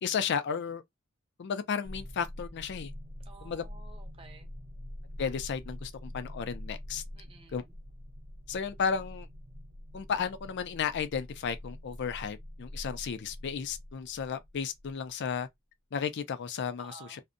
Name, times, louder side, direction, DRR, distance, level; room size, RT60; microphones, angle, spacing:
voice 1, 0.0-0.8 1.4-2.9 3.4-3.6 5.2-7.0 7.5-7.6 8.5-9.3 9.9-15.5 15.9-17.2, left 6 dB, 55° left, 0.4 m, -33 dB
sound 1, 1.8-15.1, left 1 dB, 75° right, 0.7 m, -45 dB
voice 2, 3.3-4.5 7.1-7.7 16.8-17.2, right 3 dB, 25° right, 0.7 m, -53 dB
2.6 x 2.1 x 2.5 m
head